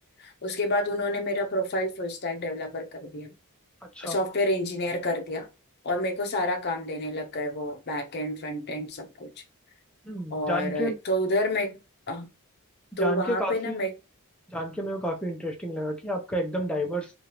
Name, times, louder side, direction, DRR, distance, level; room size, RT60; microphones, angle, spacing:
voice 1, 0.2-3.3 4.0-5.5 5.8-9.3 10.3-11.8 12.1-12.3 13.0-13.9, left 1 dB, 50° left, 0.7 m, -29 dB
voice 2, 10.0-11.0 13.0-13.8 14.5-17.1, equal, 5° left, 0.6 m, -30 dB
3.4 x 2.5 x 2.9 m
head